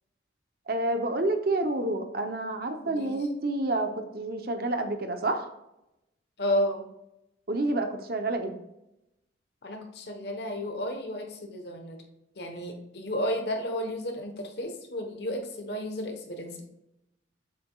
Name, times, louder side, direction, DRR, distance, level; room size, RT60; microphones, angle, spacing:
voice 1, 0.7-5.5 7.5-8.6, right 2 dB, 50° right, 6 dB, 0.8 m, -29 dB
voice 2, 2.8-3.2 6.4-6.8 9.6-12.0 12.4-16.6, equal, 60° left, 4 dB, 1.1 m, -32 dB
7.6 x 5.8 x 2.3 m, 0.86 s
head